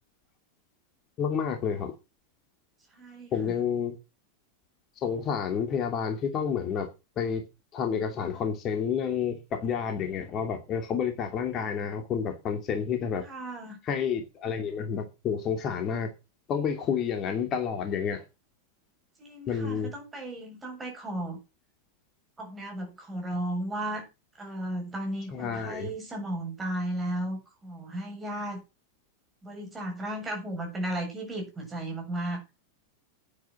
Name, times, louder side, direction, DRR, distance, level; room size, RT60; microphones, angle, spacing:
voice 1, 1.2-1.9 3.3-3.9 5.0-6.9 7.2-7.4 7.7-13.2 13.8-16.1 16.5-18.2 19.5-19.9 25.3-25.9, left 7 dB, 30° left, 2.7 m, -29 dB
voice 2, 2.9-3.5 13.2-13.8 19.2-21.4 22.4-24.1 24.4-28.6 29.4-32.4, right 1 dB, 15° right, 7.8 m, -35 dB
10.5 x 10.0 x 6.2 m
figure-of-eight pair, 90°, 0 cm